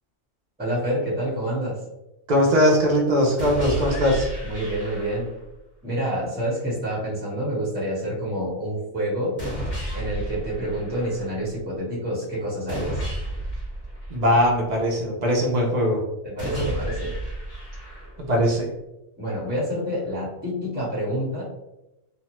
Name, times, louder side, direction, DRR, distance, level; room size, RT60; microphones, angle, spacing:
voice 1, 0.6-1.8 4.4-5.3 5.8-9.3 9.9-13.0 16.2-17.1 19.2-21.4, right 1 dB, 10° right, -7 dB, 0.9 m, -28 dB
voice 2, 2.3-4.3 14.1-16.0 18.2-18.6, equal, 55° right, -2 dB, 0.4 m, -20 dB
sound 1, 3.4-5.4 9.4-11.4 12.7-14.7 16.4-18.4, right 1 dB, 30° left, 1.1 m, -32 dB
2.6 x 2.2 x 2.9 m, 0.92 s
omnidirectional pair, 1.4 m